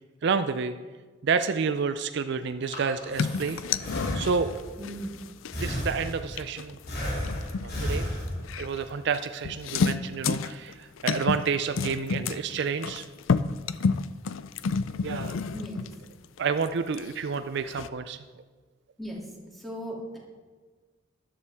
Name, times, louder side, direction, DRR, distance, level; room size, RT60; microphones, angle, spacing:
voice 1, 0.2-0.7 1.2-3.6 4.1-4.5 5.6-6.8 7.6-8.1 8.6-13.1 15.0-15.3 16.4-18.2, right 5 dB, 60° right, 10 dB, 0.4 m, -29 dB
Breathing, 2.4-4.7 5.5-6.4 6.9-8.7, equal, 55° left, 2.7 m, -33 dB
sound 1, 3.2-8.8 9.1-9.2 9.4-11.5 11.8-16.7 16.9-17.9, left 5 dB, 80° left, 0.4 m, -30 dB
voice 2, 4.8-5.2 15.5-15.8 19.0-19.2 19.6-20.2, equal, ahead, -4 dB, 2.6 m, -37 dB
13.0 x 11.0 x 3.5 m, 1.4 s
head